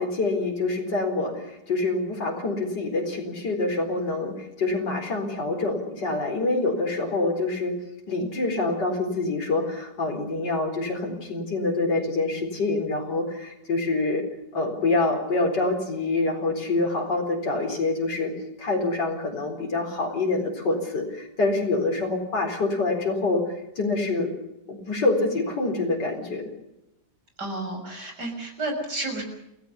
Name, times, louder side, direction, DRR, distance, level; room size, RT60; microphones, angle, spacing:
voice 1, 0.0-7.7 8.1-14.2 14.5-18.3 18.6-24.3 24.7-26.4, left 3 dB, 80° left, 1 dB, 5.0 m, -26 dB
voice 2, 27.4-29.2, right 2 dB, 70° right, 4 dB, 7.0 m, -31 dB
28.5 x 16.5 x 7.0 m, 0.88 s
omnidirectional pair, 1.8 m